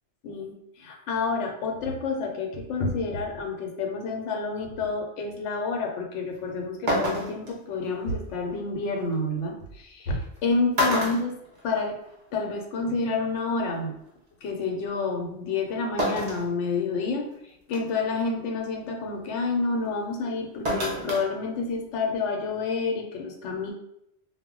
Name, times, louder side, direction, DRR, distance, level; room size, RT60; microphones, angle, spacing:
voice 1, 0.2-11.4 11.6-12.0 12.3-14.0 14.4-17.3 17.7-23.7, left 3 dB, 75° left, 2 dB, 0.9 m, -29 dB
sound 1, 6.3-6.4 6.9-7.5 9.1-9.2 10.2-10.4 10.7-12.1 12.5-12.6 13.8-13.9 16.0-16.5 17.0-17.1 17.7-18.0 20.6-21.3 21.6-21.7, equal, 45° right, 0.6 m, -27 dB
2.1 x 2.1 x 3.6 m, 0.78 s
omnidirectional pair, 1.2 m